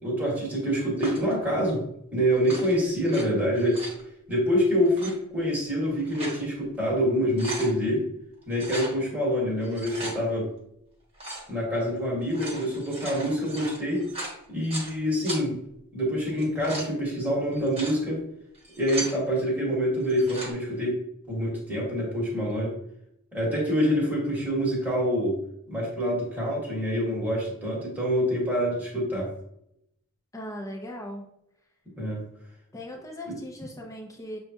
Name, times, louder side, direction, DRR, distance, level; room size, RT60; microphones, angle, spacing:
voice 1, 0.0-1.8 2.1-3.9 4.3-8.1 8.5-10.5 11.5-14.0 14.5-15.6 15.9-18.2 18.8-21.0 21.3-22.7 23.3-25.4 25.7-29.3 32.0-32.2 33.3-33.4, equal, 10° right, -6 dB, 1.4 m, -26 dB
sound 1, 1.0-1.3 2.3-3.2 3.6-4.0 4.8-5.1 5.8-6.4 6.8-6.9 7.2-7.7 8.5-8.9 9.6-10.2 11.1-11.5 12.2-14.9 15.2-15.4 16.3-16.9 17.5-18.0 18.5-19.2 20.0-20.5, right 1 dB, 25° right, 1.2 m, -37 dB
voice 2, 30.3-31.2 32.7-34.4, left 1 dB, 15° left, 0 dB, 0.8 m, -38 dB
6.6 x 2.3 x 2.8 m, 0.77 s
head